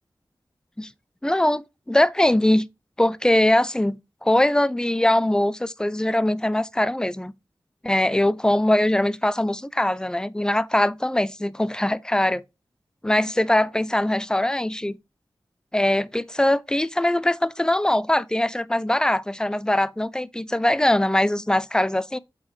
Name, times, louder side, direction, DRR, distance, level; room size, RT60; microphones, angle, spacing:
voice 1, 1.2-2.7 3.0-7.3 7.9-12.4 13.0-15.0 15.7-22.2, left 1 dB, 10° left, 0.4 m, -22 dB
8.1 x 3.9 x 3.1 m
wide cardioid pair, 80°, 8 cm